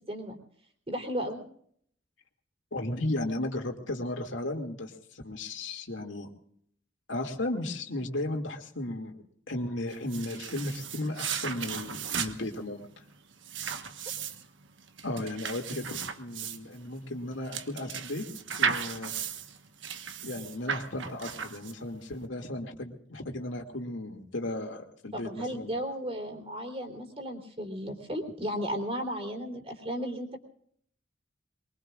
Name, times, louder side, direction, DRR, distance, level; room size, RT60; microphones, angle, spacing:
voice 1, 0.1-0.4 0.9-1.4 25.1-30.4, equal, 30° right, 3 dB, 3.6 m, -34 dB
voice 2, 2.7-6.3 7.1-12.9 15.0-18.2 18.6-19.1 20.2-25.7, left 1 dB, 85° left, 2 dB, 2.5 m, -35 dB
sound 1, 9.9-22.0, right 6 dB, 85° right, 1.4 m, -36 dB
23.5 x 23.0 x 2.5 m, 0.64 s
head